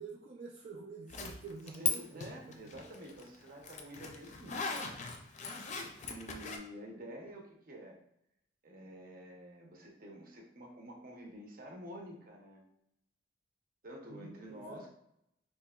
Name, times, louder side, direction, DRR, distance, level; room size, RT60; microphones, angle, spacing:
voice 1, 0.0-2.2 2.5-2.6 14.1-14.9, right 4 dB, 75° right, -2 dB, 0.5 m, -48 dB
Zipper (clothing), 1.1-1.9 2.2-6.6, left 4 dB, 40° left, 0.4 m, -38 dB
voice 2, 1.8-5.1 5.7-8.0 8.6-12.6 13.8-14.9, equal, 50° right, 0 dB, 0.8 m, -49 dB
4.5 x 2.8 x 2.3 m, 0.79 s
head